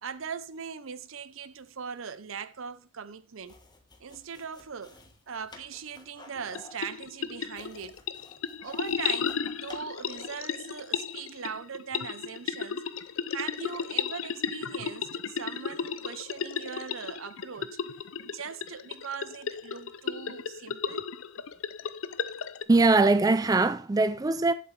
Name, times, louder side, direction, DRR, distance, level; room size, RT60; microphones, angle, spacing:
voice 1, 0.0-3.6 4.0-5.0 5.3-8.0 8.6-17.8 18.3-21.1, right 6 dB, 65° right, 0.7 m, -40 dB
sound 1, 3.4-10.5, left 2 dB, 20° left, 1.3 m, -53 dB
sound 2, 6.4-22.6, left 7 dB, 70° left, 0.6 m, -34 dB
voice 2, 22.7-24.5, right 3 dB, 15° right, 0.3 m, -21 dB
8.5 x 7.6 x 3.3 m
head